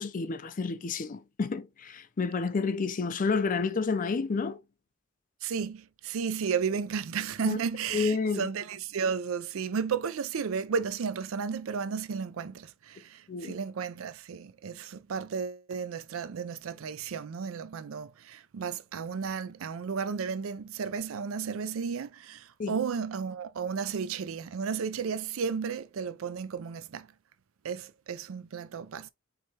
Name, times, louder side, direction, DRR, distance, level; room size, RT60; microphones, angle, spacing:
voice 1, 0.0-4.6 7.4-7.6 7.9-8.5 13.3-13.6 22.6-22.8, left 4 dB, 40° left, 0.4 m, -30 dB
voice 2, 5.4-27.1 27.6-29.1, right 6 dB, 70° right, 0.4 m, -33 dB
4.7 x 3.4 x 2.8 m
head